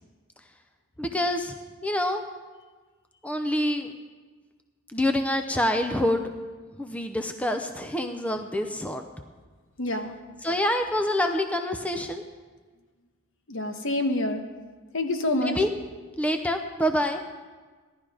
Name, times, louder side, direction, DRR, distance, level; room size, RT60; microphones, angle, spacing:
voice 1, 1.0-1.5 1.8-2.2 3.2-3.9 4.9-6.3 6.8-9.0 10.4-12.2 15.3-15.7 16.2-17.2, left 1 dB, 5° left, 6 dB, 0.6 m, -26 dB
voice 2, 9.8-10.2 13.5-14.4 14.9-15.6, left 1 dB, 60° left, 6 dB, 1.2 m, -27 dB
16.5 x 11.5 x 4.9 m, 1.4 s
head